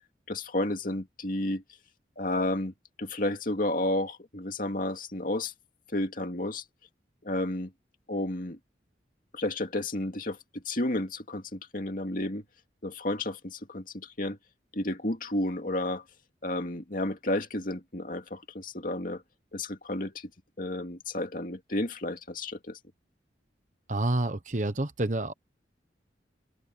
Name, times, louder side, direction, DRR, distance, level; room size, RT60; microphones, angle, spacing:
voice 1, 0.3-1.6 2.2-5.5 5.9-6.6 7.2-7.7 8.1-8.6 9.3-12.4 12.8-14.4 14.7-16.0 16.4-19.2 19.5-20.3 20.6-22.8, left 1 dB, 50° left, 2.5 m, -32 dB
voice 2, 23.9-25.3, right 2 dB, 40° right, 1.2 m, -28 dB
open air
head